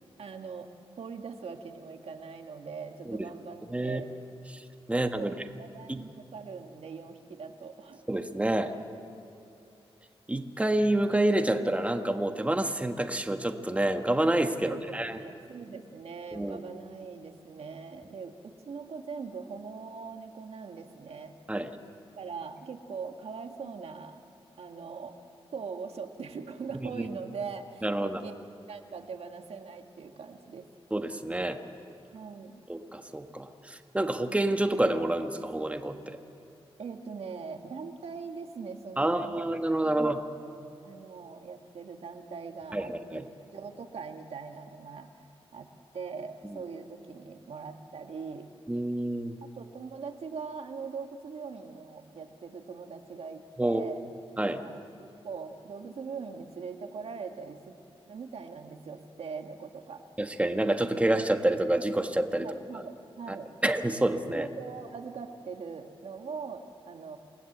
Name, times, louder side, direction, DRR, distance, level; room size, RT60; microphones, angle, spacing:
voice 1, 0.2-0.7 1.0-4.1 5.1-8.1 14.6-21.4 22.2-24.2 24.6-25.2 25.5-28.3 28.7-30.7 32.1-32.6 36.8-39.5 39.8-40.3 40.8-43.2 43.5-45.1 45.5-45.7 45.9-48.5 49.4-54.0 54.4-57.7 58.1-60.0 62.3-63.5 64.2-67.2, right 5 dB, 80° right, 5 dB, 1.8 m, -41 dB
voice 2, 3.7-4.0 4.5-4.6 4.9-5.3 5.9-6.0 8.1-8.7 10.3-15.2 16.3-16.6 21.5-21.7 27.8-28.2 30.9-31.6 32.7-36.2 39.0-40.2 42.7-43.3 46.4-46.6 48.7-49.4 53.6-53.8 54.4-54.6 60.2-62.5 63.3-63.4 63.6-64.5, right 1 dB, 15° right, 6 dB, 1.4 m, -28 dB
28.5 x 19.0 x 8.1 m, 2.7 s
wide cardioid pair, 105°, 10 cm